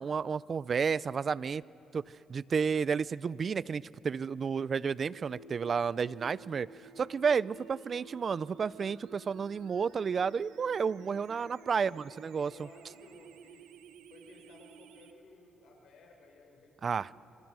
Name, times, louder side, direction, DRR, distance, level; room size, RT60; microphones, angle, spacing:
voice 1, 0.0-1.6 1.9-2.0 2.3-6.7 7.0-12.5 16.8-17.1, right 6 dB, 45° right, 20 dB, 0.5 m, -31 dB
sound 1, 5.1-15.1, right 5 dB, 90° right, 1.3 m, -53 dB
voice 2, 11.3-11.8 12.3-13.7 14.1-17.1, left 3 dB, 70° left, 1 dB, 5.5 m, -58 dB
26.5 x 26.0 x 6.3 m, 3.0 s
cardioid pair, 90°, 0 cm